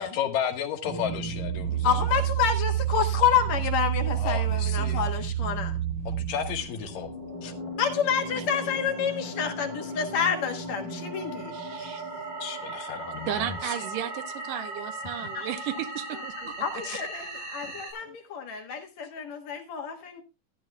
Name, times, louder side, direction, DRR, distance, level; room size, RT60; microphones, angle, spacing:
voice 1, 0.0-2.2 4.1-5.0 6.1-7.1 7.4-7.5 12.4-13.8 15.2-15.3 16.8-17.0 18.0-18.2, left 8 dB, 80° left, 3.1 m, -33 dB
sound 1, 0.8-17.9, right 8 dB, 35° right, 5.3 m, -32 dB
voice 2, 1.8-5.8 7.8-11.9 15.3-15.5 16.6-20.2, left 7 dB, 60° left, 2.6 m, -28 dB
voice 3, 11.5-12.0 13.3-16.8, right 11 dB, 80° right, 2.5 m, -34 dB
15.5 x 11.0 x 2.2 m
omnidirectional pair, 3.9 m